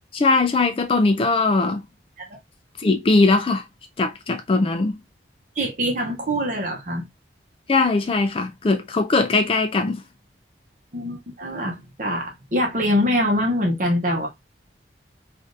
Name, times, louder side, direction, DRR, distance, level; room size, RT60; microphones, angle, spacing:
voice 1, 0.1-1.8 2.8-3.6 4.0-5.0 7.7-10.0, left 3 dB, 30° left, 0.3 m, -20 dB
voice 2, 5.6-7.0 10.9-14.3, equal, 45° right, 0.8 m, -24 dB
3.2 x 2.5 x 2.6 m
head